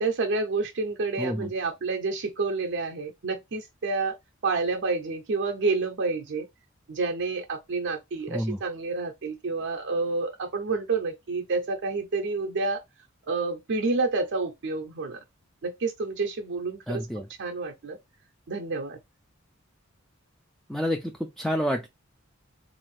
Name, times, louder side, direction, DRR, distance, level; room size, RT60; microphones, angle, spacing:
voice 1, 0.0-4.2 4.4-6.5 6.9-12.8 13.3-15.2 15.6-18.0 18.5-19.0, right 3 dB, 60° right, 0.5 m, -29 dB
voice 2, 1.2-1.5 8.3-8.6 16.9-17.3 20.7-21.9, equal, ahead, 0.3 m, -29 dB
3.8 x 2.5 x 3.2 m
head